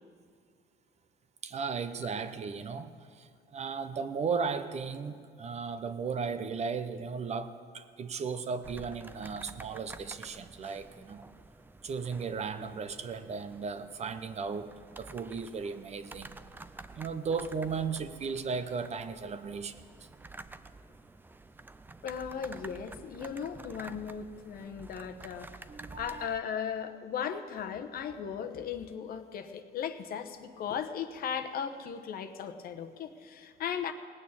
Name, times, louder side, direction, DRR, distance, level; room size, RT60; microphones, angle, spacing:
voice 1, 1.4-11.2 11.8-16.3 16.9-19.8 25.7-26.3, right 5 dB, 40° right, 11 dB, 0.8 m, -36 dB
sound 1, 8.6-26.4, right 3 dB, 10° right, 0.5 m, -50 dB
voice 2, 22.0-25.7 26.0-33.9, left 7 dB, 60° left, 8 dB, 1.0 m, -37 dB
18.5 x 6.5 x 8.6 m, 2.1 s
cardioid pair, 110°, 17 cm